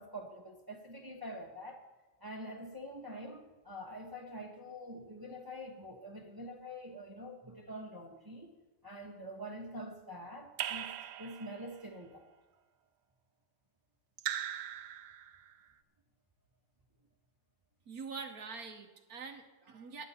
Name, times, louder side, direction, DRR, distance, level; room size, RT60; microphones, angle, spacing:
voice 1, 0.0-1.9 2.2-8.5 8.8-12.3, equal, 25° right, 1 dB, 0.5 m, -46 dB
Raindrop / Drip, 10.6-11.8 14.2-15.5, right 11 dB, 70° right, 1.0 m, -40 dB
voice 2, 17.9-20.1, right 5 dB, 55° right, 5 dB, 1.2 m, -45 dB
21.5 x 8.2 x 4.2 m, 1.2 s
omnidirectional pair, 2.4 m